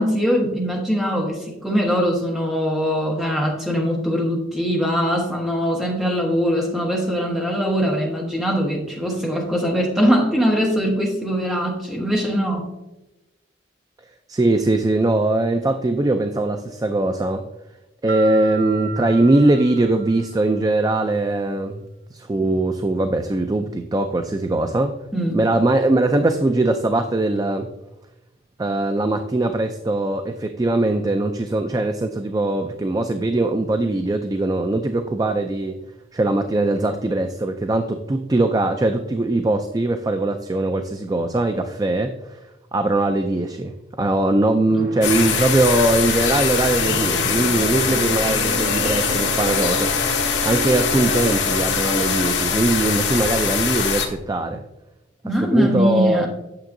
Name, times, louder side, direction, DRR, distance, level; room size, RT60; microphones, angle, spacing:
voice 1, 0.0-12.7 25.1-25.4 55.2-56.3, equal, ahead, -1 dB, 1.3 m, -21 dB
voice 2, 14.3-17.5 18.0-21.8 22.1-25.0 25.3-27.7 28.6-35.8 36.1-42.4 42.7-49.9 50.4-54.6 55.4-56.3, right 2 dB, 20° right, 7 dB, 0.3 m, -21 dB
sound 1, 18.1-20.7, right 7 dB, 85° right, 1.2 m, -34 dB
sound 2, 44.8-52.4, right 1 dB, 60° right, 1.1 m, -30 dB
sound 3, 45.0-54.1, left 6 dB, 75° left, 1.0 m, -22 dB
8.7 x 6.8 x 2.6 m, 0.98 s
head